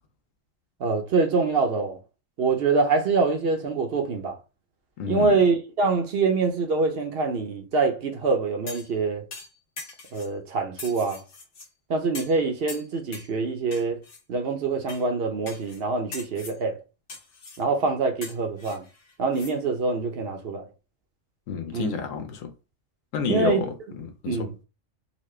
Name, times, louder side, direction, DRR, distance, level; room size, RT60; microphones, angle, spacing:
voice 1, 0.8-2.0 2.4-4.4 5.1-9.2 10.1-11.2 11.9-14.0 14.3-16.8 17.6-18.9 19.2-20.7 21.7-22.0 23.3-23.6 24.3-24.5, right 4 dB, 55° right, 0.8 m, -25 dB
voice 2, 5.0-5.4 21.5-22.5 23.1-24.5, left 5 dB, 90° left, 1.1 m, -30 dB
sound 1, 8.7-9.0 9.3-10.3 10.8-11.7 12.1-12.4 12.7-13.3 13.7-14.2 14.9-15.0 15.5-15.8 16.1-16.6 17.1-17.6 18.2-19.5 19.9-20.0, left 4 dB, 65° left, 1.4 m, -41 dB
4.1 x 2.2 x 3.2 m
omnidirectional pair, 1.3 m